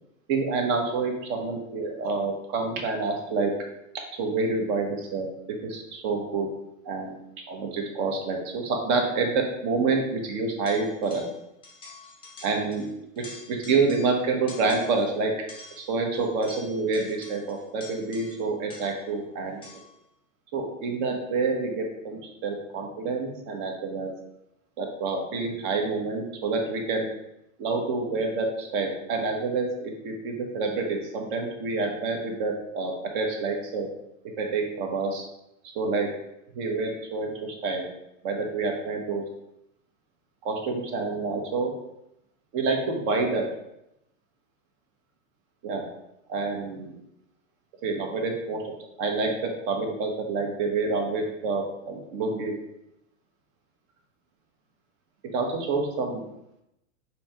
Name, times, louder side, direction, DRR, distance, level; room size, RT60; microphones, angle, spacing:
voice 1, 0.3-3.5 4.2-5.3 5.6-6.5 6.8-7.2 7.5-11.2 12.4-12.8 13.1-15.3 15.9-19.6 20.5-24.1 24.8-27.1 27.6-33.9 34.4-35.2 35.7-36.1 36.6-37.9 38.2-39.2 40.4-41.7 42.5-43.4 45.6-45.8 46.3-47.0 47.8-48.6 49.0-52.5 55.3-56.2, right 3 dB, 45° right, 2 dB, 1.0 m, -28 dB
sound 1, 10.7-11.4 11.6-12.9 13.1-14.2 14.5-15.1 15.5-19.1 19.6-20.0, left 3 dB, 15° left, 0.5 m, -47 dB
4.2 x 2.9 x 3.3 m, 0.83 s
hypercardioid pair, 130°, 39 cm